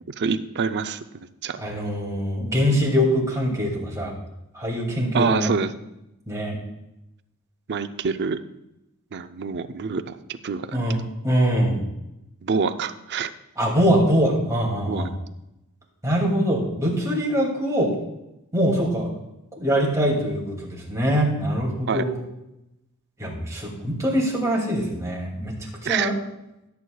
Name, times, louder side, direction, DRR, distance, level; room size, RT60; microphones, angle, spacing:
voice 1, 0.2-1.0 1.4-1.6 5.1-5.7 7.7-8.4 9.1-10.2 10.4-10.8 12.4-13.3 14.8-15.1 21.9-22.0 25.9-26.1, right 5 dB, 50° right, 10 dB, 0.5 m, -25 dB
voice 2, 1.6-4.1 4.5-5.5 6.3-6.6 10.7-11.0 11.2-11.8 13.6-15.1 16.0-17.9 18.5-19.1 19.6-22.2 23.2-25.5 25.8-26.2, equal, 15° right, -3 dB, 2.5 m, -23 dB
17.0 x 8.2 x 2.3 m, 0.90 s
head